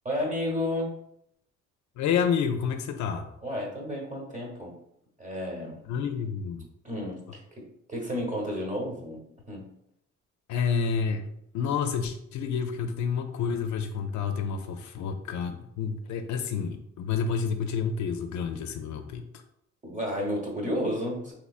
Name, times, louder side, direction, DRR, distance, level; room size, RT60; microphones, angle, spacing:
voice 1, 0.0-1.0 3.4-4.7 5.2-5.8 6.8-9.2 9.5-9.7 19.8-21.3, left 1 dB, 25° right, -1 dB, 1.1 m, -32 dB
voice 2, 2.0-3.3 5.8-6.6 10.5-19.2, left 6 dB, 70° left, 6 dB, 0.5 m, -29 dB
3.2 x 3.1 x 2.4 m, 0.74 s
cardioid pair, 90°, 30 cm